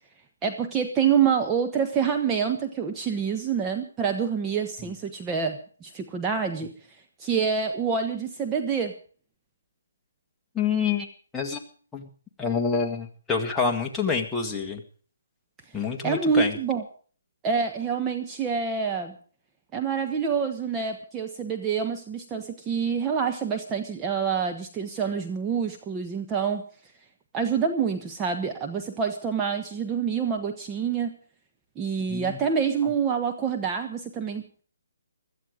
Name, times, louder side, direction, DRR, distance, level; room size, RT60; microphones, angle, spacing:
voice 1, 0.4-6.7 7.2-8.9 16.0-16.8 17.4-19.1 19.7-26.7 27.3-31.2 31.8-34.6, right 6 dB, 15° right, 3 dB, 1.2 m, -27 dB
voice 2, 10.6-11.1 11.3-11.6 11.9-12.1 12.4-14.8 15.7-16.6 32.1-32.4 32.8-32.9, left 5 dB, 10° left, 0 dB, 1.9 m, -27 dB
16.5 x 13.5 x 5.1 m, 0.42 s
hypercardioid pair, 155°, 0 cm